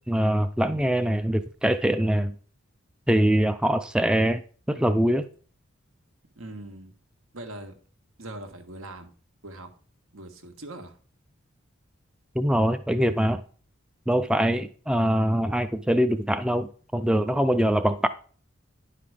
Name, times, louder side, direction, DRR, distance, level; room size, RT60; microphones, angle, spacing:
voice 1, 0.1-2.3 3.1-4.4 4.7-5.3 12.4-13.4 14.1-18.1, equal, 5° right, 9 dB, 0.3 m, -23 dB
voice 2, 6.3-6.9 7.3-7.8 8.2-9.1 9.4-9.7 10.1-11.0, right 2 dB, 85° right, 6 dB, 1.6 m, -41 dB
10.5 x 5.8 x 4.9 m, 0.42 s
head